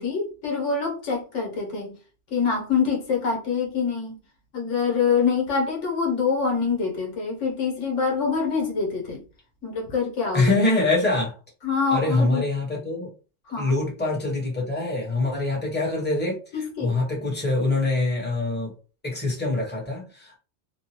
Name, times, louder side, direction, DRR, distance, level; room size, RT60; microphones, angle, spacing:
voice 1, 0.0-1.9 2.3-4.1 4.5-9.2 9.6-10.6 11.6-12.4 13.5-13.7 16.5-17.0, left 5 dB, 85° left, 1.4 m, -25 dB
voice 2, 10.3-11.3 11.9-13.1 13.6-18.7 19.0-20.4, left 2 dB, 10° left, 1.1 m, -24 dB
3.0 x 2.3 x 2.9 m
omnidirectional pair, 1.2 m